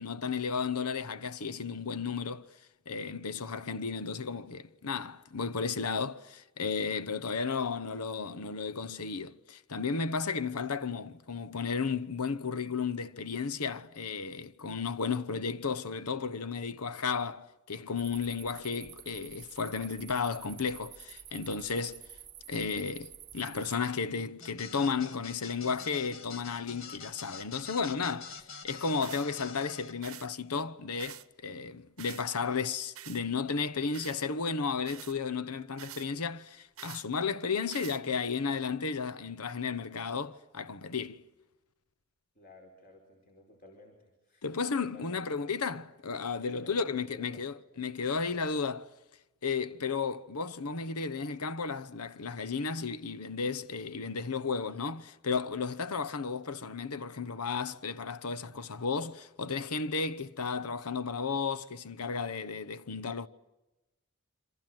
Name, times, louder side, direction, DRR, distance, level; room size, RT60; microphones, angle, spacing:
voice 1, 0.0-2.4 2.9-22.0 22.5-41.2 44.4-48.9 49.4-63.3, left 5 dB, 90° left, 1.0 m, -33 dB
sound 1, 18.0-23.8, right 10 dB, 25° right, 0.9 m, -49 dB
sound 2, 24.4-29.9, left 5 dB, 60° left, 2.1 m, -46 dB
sound 3, 29.0-29.3 30.0-30.3 31.0-31.3 32.0-32.2 33.0-33.2 33.9-34.2 34.8-35.2 35.8-36.1 36.8-37.1 37.7-38.0, right 12 dB, 70° right, 0.9 m, -46 dB
voice 2, 42.3-44.4 44.8-45.4 46.4-47.4, left 2 dB, 40° left, 4.7 m, -52 dB
27.5 x 26.0 x 7.8 m
head